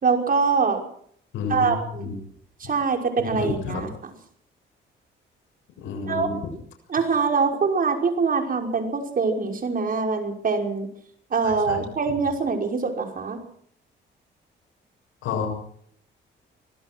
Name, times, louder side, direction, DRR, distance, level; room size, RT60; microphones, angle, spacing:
voice 1, 0.0-0.8 1.5-2.1 2.6-3.9 6.1-6.3 6.9-10.9 11.3-13.4, right 5 dB, 45° right, 4 dB, 5.7 m, -24 dB
voice 2, 1.3-2.2 3.2-3.8 5.8-6.4 11.4-11.8 15.2-15.5, left 5 dB, 90° left, 2 dB, 6.9 m, -30 dB
25.0 x 17.0 x 6.2 m, 0.63 s
cardioid pair, 90°, 20 cm